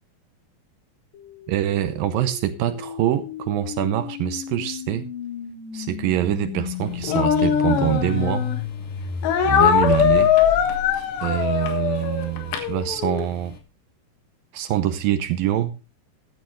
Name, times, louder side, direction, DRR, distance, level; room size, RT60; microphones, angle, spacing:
sound 1, 1.1-11.2, left 9 dB, 70° left, 2.3 m, -33 dB
voice 1, 1.5-5.1 5.7-8.5 9.4-10.3 11.2-13.5 14.5-15.7, right 12 dB, 75° right, 10 dB, 2.2 m, -24 dB
Speech, 7.0-8.6 9.2-13.3, left 8 dB, 85° left, 3.8 m, -21 dB
14.5 x 12.0 x 3.0 m, 0.29 s
omnidirectional pair, 4.8 m